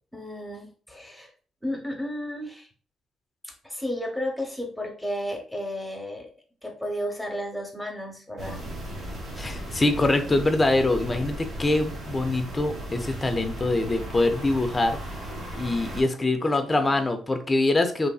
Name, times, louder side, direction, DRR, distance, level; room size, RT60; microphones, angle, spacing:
voice 1, 0.1-1.3 1.6-2.7 3.4-6.3 6.6-8.6 16.4-17.0, equal, 5° left, 1 dB, 0.8 m, -33 dB
sound 1, 8.4-16.0, right 1 dB, 65° right, 1.2 m, -36 dB
voice 2, 9.4-15.0 15.5-18.1, left 2 dB, 20° left, 7 dB, 0.5 m, -24 dB
3.0 x 2.6 x 2.3 m, 0.42 s
cardioid pair, 90°, 0 cm